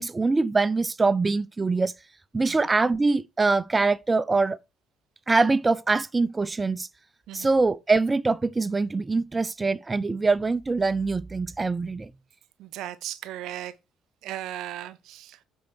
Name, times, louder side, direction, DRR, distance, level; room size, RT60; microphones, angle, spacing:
voice 1, 0.0-1.9 2.3-4.6 5.3-6.9 7.3-12.1, right 3 dB, 20° right, 0.5 m, -23 dB
voice 2, 12.6-13.7 14.2-15.4, right 13 dB, 60° right, 0.7 m, -36 dB
8.2 x 4.6 x 6.0 m
figure-of-eight pair, 50°, 0 cm